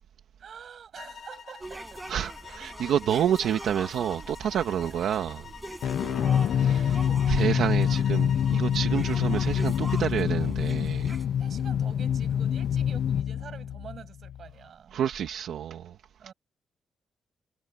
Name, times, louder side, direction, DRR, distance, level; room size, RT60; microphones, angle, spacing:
voice 1, 0.4-2.2 6.0-7.2 11.4-14.9 16.2-16.3, right 7 dB, 45° right, 6.8 m, -47 dB
sound 1, 0.9-10.1, left 7 dB, 45° left, 4.4 m, -46 dB
sound 2, 1.6-11.3, right 2 dB, 15° right, 5.1 m, -43 dB
voice 2, 2.1-5.5 6.4-6.8 7.3-11.2 14.9-16.0 16.2-16.3, right 9 dB, 75° right, 1.5 m, -29 dB
sound 3, 5.8-14.5, left 9 dB, 65° left, 0.5 m, -26 dB
wide cardioid pair, 180°, 0 cm